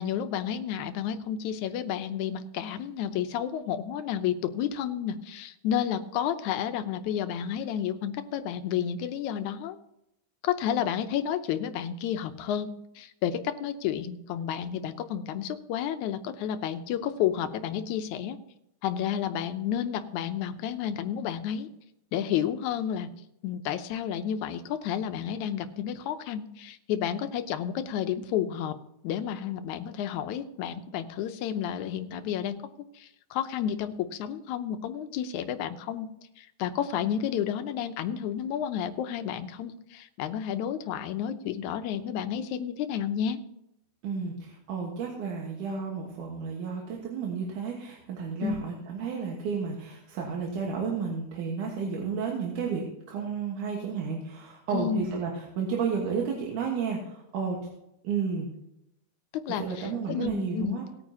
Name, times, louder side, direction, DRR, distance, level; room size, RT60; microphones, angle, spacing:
voice 1, 0.0-9.8 10.4-18.4 18.8-21.7 22.1-23.1 23.4-28.8 29.0-32.6 33.0-36.1 36.4-43.4 48.4-48.6 54.7-55.1 59.3-60.8, left 9 dB, 80° left, 9 dB, 2.1 m, -31 dB
voice 2, 44.0-57.6 58.0-58.5 59.6-60.8, right 5 dB, 90° right, -1 dB, 3.0 m, -32 dB
19.0 x 9.0 x 2.9 m, 0.82 s
omnidirectional pair, 3.5 m